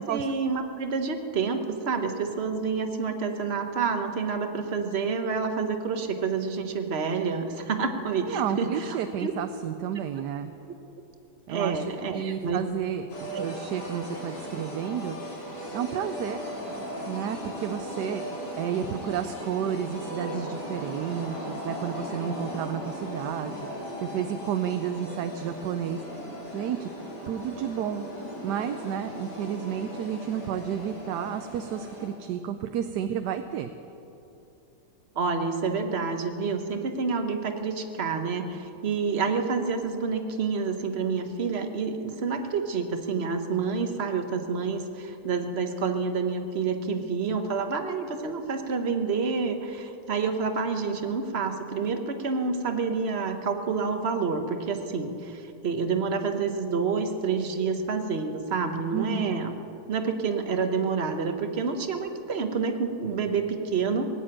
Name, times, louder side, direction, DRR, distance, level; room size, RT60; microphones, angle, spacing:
voice 1, 0.0-9.3 11.5-12.6 13.3-13.5 35.1-59.5 59.9-64.1, right 5 dB, 45° right, 6 dB, 1.1 m, -28 dB
voice 2, 8.2-10.5 11.5-11.8 12.1-13.0 13.4-15.2 15.7-16.4 17.1-18.2 18.6-26.0 26.5-26.9 27.2-28.0 28.4-33.7 58.9-59.3, right 9 dB, 80° right, 8 dB, 1.2 m, -31 dB
sound 1, 13.1-32.1, equal, 85° left, 3.6 m, -38 dB
18.0 x 8.7 x 8.9 m, 2.9 s
omnidirectional pair, 1.8 m